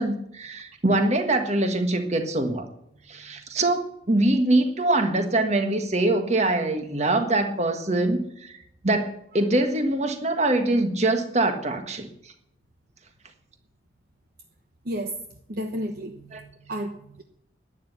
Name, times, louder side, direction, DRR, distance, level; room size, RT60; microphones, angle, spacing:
voice 1, 0.0-2.7 3.1-12.1 16.3-16.4, right 2 dB, 35° right, 1.6 m, -24 dB
voice 2, 14.8-15.2 15.5-17.2, right 1 dB, 50° right, 1.0 m, -32 dB
11.5 x 10.0 x 8.2 m
head